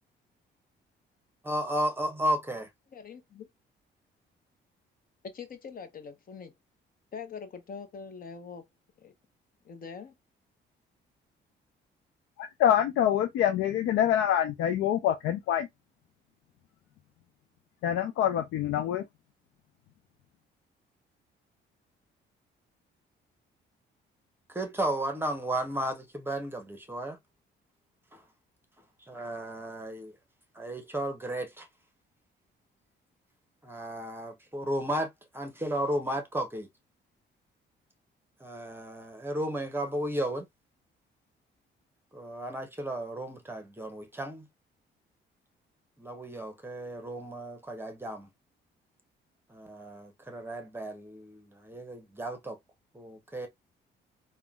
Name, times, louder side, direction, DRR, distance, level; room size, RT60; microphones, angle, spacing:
voice 1, 1.4-2.7 24.5-27.2 28.1-28.2 29.1-30.2 30.5-31.7 33.6-36.7 38.4-40.5 42.1-44.5 46.0-48.3 49.5-52.6 52.9-53.5, right 1 dB, 10° right, 0.7 m, -34 dB
voice 2, 2.9-3.5 5.2-6.5 7.1-8.6 9.0-9.1 9.6-10.1, left 6 dB, 45° left, 0.7 m, -43 dB
voice 3, 12.4-15.7 17.8-19.1, left 10 dB, 80° left, 0.4 m, -26 dB
3.6 x 2.1 x 2.2 m
cardioid pair, 90°, 20 cm